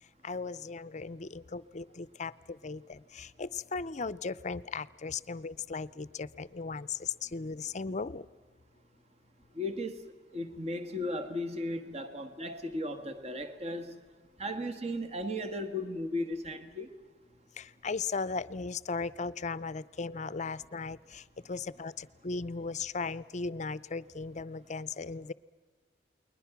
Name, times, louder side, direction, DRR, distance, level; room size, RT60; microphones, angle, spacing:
voice 1, 0.2-2.3 2.6-8.2 17.6-21.2 21.5-25.3, left 4 dB, 40° left, 0.6 m, -37 dB
voice 2, 9.5-14.0 14.4-16.9, left 1 dB, 35° right, 1.5 m, -36 dB
29.5 x 21.5 x 6.0 m
head